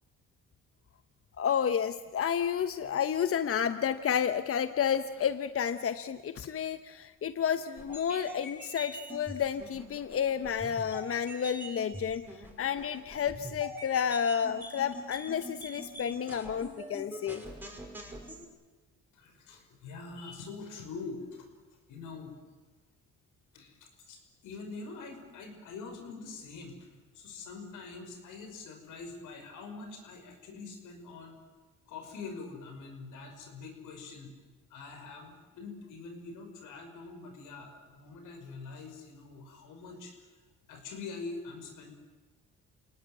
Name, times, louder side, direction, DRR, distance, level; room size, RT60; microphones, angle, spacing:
voice 1, 1.4-17.4, left 8 dB, 50° left, 11 dB, 1.0 m, -31 dB
sound 1, 7.8-18.4, right 1 dB, 5° right, 5.3 m, -45 dB
voice 2, 19.1-22.3 23.5-31.4 31.9-34.3 34.7-40.4 40.7-41.9, left 4 dB, 90° left, 5 dB, 5.8 m, -44 dB
28.0 x 19.0 x 9.2 m, 1.3 s
cardioid pair, 90°, 30 cm